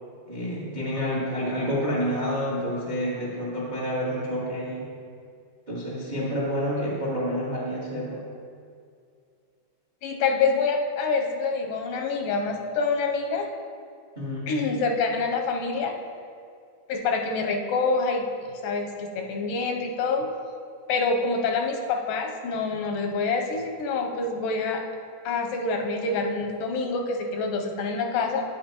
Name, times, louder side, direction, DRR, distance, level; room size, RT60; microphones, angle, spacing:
voice 1, 0.2-4.9 5.7-8.2 14.1-14.8, equal, 60° right, -6 dB, 0.4 m, -29 dB
voice 2, 10.0-13.5 14.5-15.9 16.9-20.3 20.9-24.8 25.2-28.4, left 4 dB, 85° left, 3 dB, 2.3 m, -26 dB
9.6 x 9.1 x 2.9 m, 2.3 s
omnidirectional pair, 3.9 m